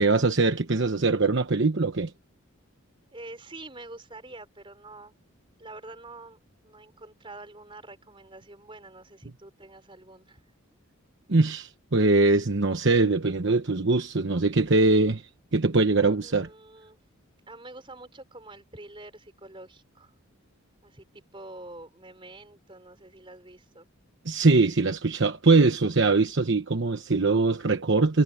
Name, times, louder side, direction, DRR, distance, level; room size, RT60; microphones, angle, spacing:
voice 1, 0.0-2.1 11.3-16.5 24.2-28.2, right 3 dB, 55° right, 1.1 m, -22 dB
voice 2, 3.1-5.1 5.6-10.4 16.1-17.0 17.5-20.1 20.8-23.9, right 2 dB, 25° right, 4.5 m, -46 dB
head